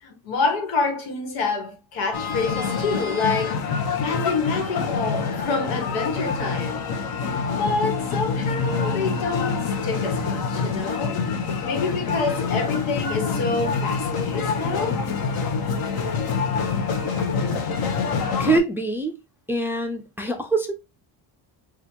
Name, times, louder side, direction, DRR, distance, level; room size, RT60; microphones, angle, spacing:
voice 1, 0.0-3.6 4.0-6.8 7.6-11.2 11.6-15.0, left 4 dB, 85° left, 1.4 m, -27 dB
sound 1, 2.1-18.6, left 5 dB, 50° left, 0.8 m, -26 dB
voice 2, 18.4-19.1 19.5-20.7, right 3 dB, 5° right, 0.4 m, -24 dB
4.9 x 2.4 x 2.8 m
cardioid pair, 110°, 46 cm